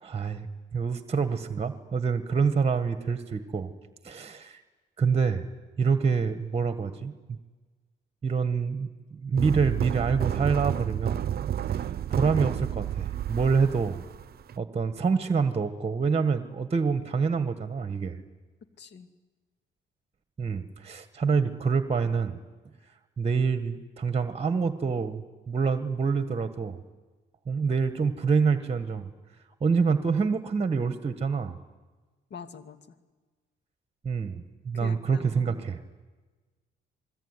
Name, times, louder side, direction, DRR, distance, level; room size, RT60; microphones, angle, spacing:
voice 1, 0.0-3.7 4.0-4.6 5.0-5.4 5.8-7.4 8.2-11.2 11.6-14.0 14.6-18.2 20.4-22.4 23.2-25.2 25.5-26.8 27.5-29.1 29.6-31.6 34.0-35.8, right 5 dB, 30° right, 10 dB, 1.6 m, -26 dB
sound 1, 9.4-14.5, right 10 dB, 50° right, 0.8 m, -30 dB
voice 2, 18.8-19.1 32.3-33.0 34.7-35.6, left 6 dB, 60° left, 9 dB, 2.4 m, -44 dB
27.0 x 21.0 x 9.9 m, 1.3 s
cardioid pair, 90°, 20 cm